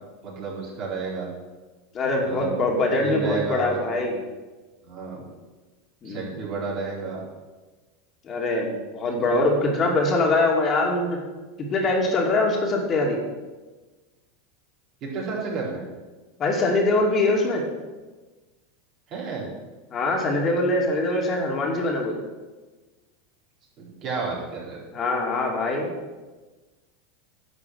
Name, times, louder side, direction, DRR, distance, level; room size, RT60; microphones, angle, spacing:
voice 1, 0.2-1.3 2.2-2.5 3.0-4.1 4.8-5.3 6.0-7.2 15.0-15.8 19.1-19.5 23.8-24.8, right 4 dB, 45° right, -4 dB, 4.2 m, -31 dB
voice 2, 1.9-4.1 6.0-6.3 8.3-11.2 11.6-13.2 16.4-17.6 19.9-22.2 24.9-25.9, left 2 dB, 35° left, 0 dB, 2.5 m, -23 dB
10.5 x 5.4 x 7.8 m, 1.3 s
hypercardioid pair, 90°, 0 cm